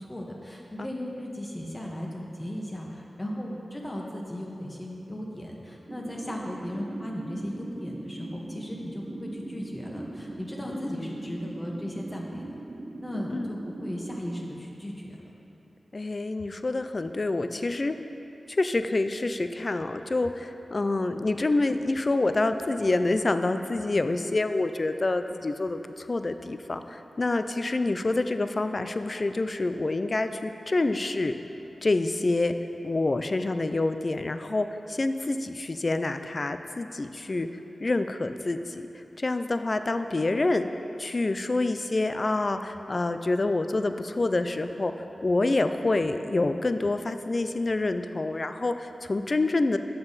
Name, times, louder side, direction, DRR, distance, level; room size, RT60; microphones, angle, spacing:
voice 1, 0.0-12.4 13.0-15.3, equal, 20° left, -2 dB, 1.1 m, -36 dB
sound 1, 5.9-14.5, right 2 dB, 45° right, 0.5 m, -40 dB
voice 2, 10.7-11.1 13.3-13.5 15.9-17.9 18.5-31.4 31.8-32.5 32.8-37.5 37.8-38.9 39.2-40.7 41.0-44.9 45.2-49.8, left 2 dB, 45° left, 9 dB, 0.4 m, -27 dB
8.8 x 6.8 x 4.1 m, 2.9 s
wide cardioid pair, 70°, 0 cm